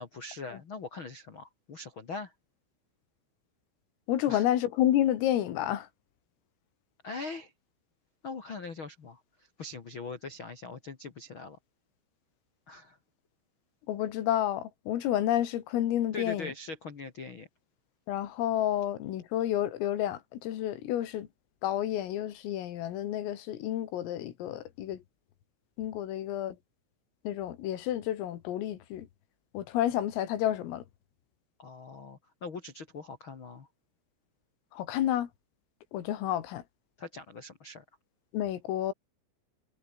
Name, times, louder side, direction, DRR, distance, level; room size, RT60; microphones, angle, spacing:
voice 1, 0.0-2.3 4.3-4.4 7.0-7.5 8.2-11.6 12.7-13.0 16.1-17.5 31.6-33.7 37.0-37.8, left 3 dB, 65° left, 1.2 m, -42 dB
voice 2, 4.1-5.9 13.9-16.5 18.1-21.3 21.6-25.0 25.8-26.6 27.3-29.1 29.5-30.8 34.7-35.3 35.9-36.6 38.3-38.9, left 12 dB, 80° left, 4.7 m, -30 dB
omnidirectional pair, 5.9 m